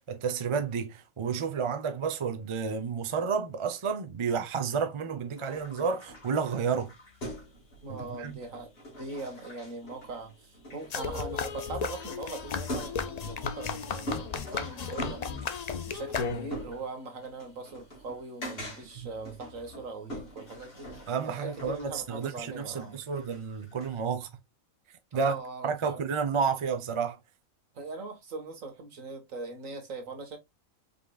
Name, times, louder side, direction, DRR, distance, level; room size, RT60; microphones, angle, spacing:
voice 1, 0.0-6.9 7.9-8.4 19.0-19.1 21.1-24.3 25.1-25.3 25.6-27.2, right 6 dB, 45° right, 0.4 m, -31 dB
sound 1, 5.4-24.0, equal, 45° left, 2.3 m, -44 dB
voice 2, 7.8-23.0 25.1-26.0 27.7-30.4, right 3 dB, 70° right, 1.7 m, -41 dB
sound 2, 10.9-16.7, left 5 dB, 60° left, 0.4 m, -35 dB
5.1 x 3.6 x 2.3 m
omnidirectional pair, 1.5 m